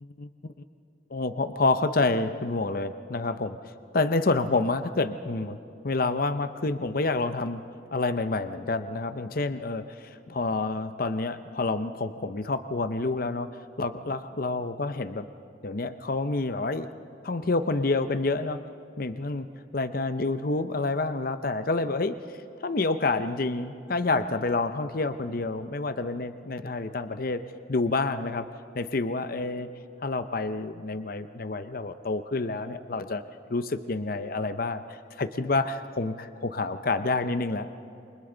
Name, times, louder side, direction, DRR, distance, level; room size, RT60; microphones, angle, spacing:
voice 1, 0.0-0.5 1.1-5.6 5.8-7.6 7.9-13.5 13.8-15.2 15.6-16.9 17.2-18.6 19.0-19.5 19.7-22.2 22.6-27.4 27.7-28.5 28.7-29.7 30.0-33.2 33.5-34.8 35.2-37.8, left 3 dB, 50° left, 10 dB, 0.7 m, -28 dB
28.5 x 25.0 x 3.9 m, 2.7 s
head